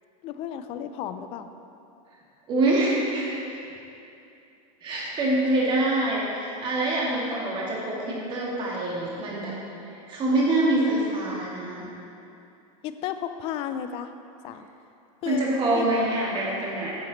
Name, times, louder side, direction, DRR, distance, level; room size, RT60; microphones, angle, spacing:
voice 1, 0.2-1.5 12.8-14.1 14.4-14.7 15.2-15.5 15.8-16.0, left 9 dB, 30° left, 9 dB, 0.4 m, -33 dB
voice 2, 2.5-3.6 4.8-9.5 9.9-11.9 15.3-16.9, right 2 dB, 25° right, -4 dB, 1.8 m, -25 dB
9.4 x 7.4 x 4.0 m, 2.7 s
supercardioid pair, 160°, 19 cm